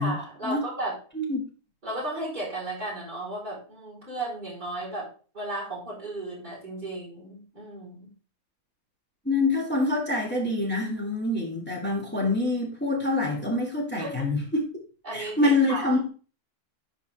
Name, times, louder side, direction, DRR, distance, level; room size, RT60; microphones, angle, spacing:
voice 1, 0.0-1.0 1.8-8.1 14.0-14.3 15.0-15.9, right 1 dB, 30° right, -6 dB, 4.4 m, -35 dB
voice 2, 9.2-14.6 15.1-16.1, left 2 dB, 5° left, -2 dB, 2.2 m, -26 dB
11.5 x 4.4 x 3.4 m, 0.38 s
omnidirectional pair, 1.6 m